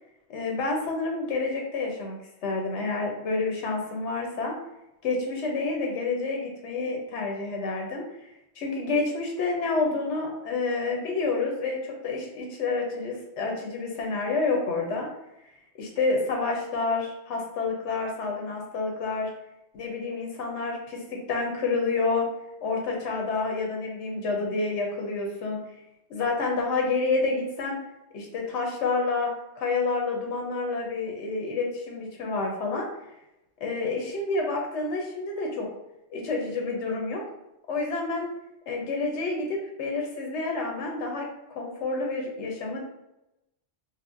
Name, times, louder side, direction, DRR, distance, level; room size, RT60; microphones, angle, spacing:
voice 1, 0.3-4.5 5.0-8.0 8.6-15.1 15.8-19.3 19.7-22.3 22.6-25.6 26.1-27.8 28.1-29.3 29.6-32.9 33.6-35.7 36.1-37.2 37.7-38.3 38.7-41.3 41.5-42.8, left 3 dB, 80° left, 0 dB, 1.0 m, -29 dB
4.3 x 2.1 x 2.5 m, 0.87 s
omnidirectional pair, 1.2 m